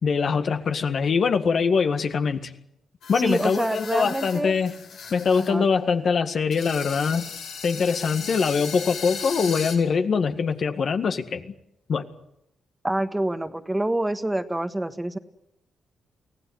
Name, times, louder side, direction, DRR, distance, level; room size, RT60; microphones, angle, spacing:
voice 1, 0.0-2.5 3.1-4.7 5.1-7.2 7.6-11.5 11.9-12.0, left 5 dB, 60° left, 7 dB, 1.8 m, -23 dB
sound 1, 3.0-5.5 5.8-5.9 6.5-9.7, left 6 dB, 85° left, 5.2 m, -37 dB
voice 2, 3.1-4.5 5.4-5.7 12.8-15.2, right 1 dB, 10° right, 9 dB, 1.4 m, -27 dB
24.0 x 16.5 x 9.7 m, 0.83 s
cardioid pair, 75°, 0 cm